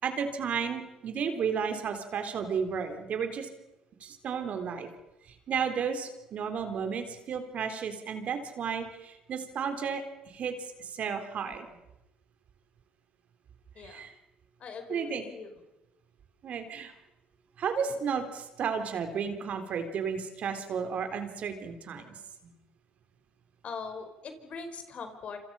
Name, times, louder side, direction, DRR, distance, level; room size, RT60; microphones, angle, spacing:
voice 1, 0.0-3.5 4.0-4.9 5.3-11.7 13.8-14.1 14.9-15.2 16.4-16.9 17.6-22.5, right 6 dB, 55° right, 7 dB, 3.9 m, -33 dB
voice 2, 14.6-15.5 23.6-25.4, left 5 dB, 50° left, 7 dB, 5.0 m, -41 dB
27.5 x 26.5 x 5.7 m, 0.94 s
supercardioid pair, 75°, 3 cm